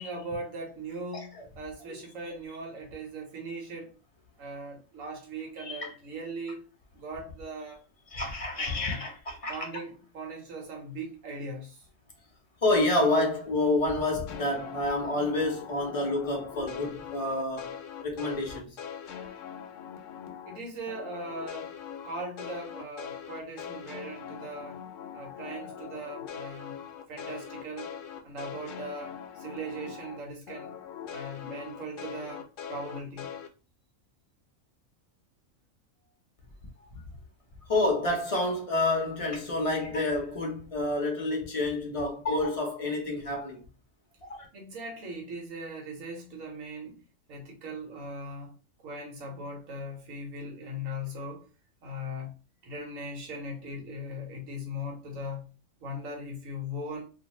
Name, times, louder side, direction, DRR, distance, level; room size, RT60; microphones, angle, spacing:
voice 1, 0.0-3.9 4.4-6.6 6.9-7.8 8.2-8.3 8.5-9.1 9.5-11.8 20.5-21.7 22.0-24.8 25.1-26.7 27.1-28.0 28.2-30.7 31.1-33.3 44.5-47.0 47.3-48.5 48.8-51.4 51.8-52.3 52.6-55.5 55.8-57.0, equal, 80° right, 1.3 m, -39 dB
voice 2, 1.1-1.5 5.6-5.9 8.1-9.7 12.6-17.8 18.0-18.8 36.9-37.0 37.7-43.6 44.3-44.4, left 2 dB, 35° left, 0.6 m, -28 dB
sound 1, 14.3-20.6 20.9-30.2 30.5-33.5, left 8 dB, 75° left, 0.9 m, -42 dB
2.5 x 2.5 x 2.9 m
omnidirectional pair, 1.4 m